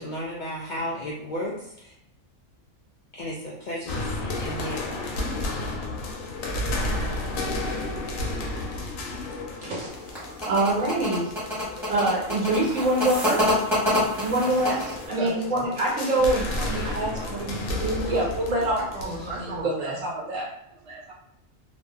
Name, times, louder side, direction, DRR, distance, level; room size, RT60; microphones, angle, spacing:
voice 1, 0.0-1.9 3.1-5.2, equal, 70° left, -5 dB, 0.4 m, -34 dB
sound 1, 3.9-19.6, left 2 dB, 85° left, 1.0 m, -33 dB
voice 2, 9.6-9.9 10.5-11.3 11.7-13.6 14.2-18.8 19.2-19.9 20.3-20.4, right 2 dB, 80° right, -6 dB, 1.2 m, -25 dB
sound 2, 9.9-15.1, left 1 dB, ahead, 1.1 m, -27 dB
voice 3, 15.1-15.7 16.2-18.1 18.7-20.3 20.9-21.1, right 2 dB, 50° right, -3 dB, 0.3 m, -36 dB
2.5 x 2.4 x 2.3 m, 0.77 s
omnidirectional pair, 1.3 m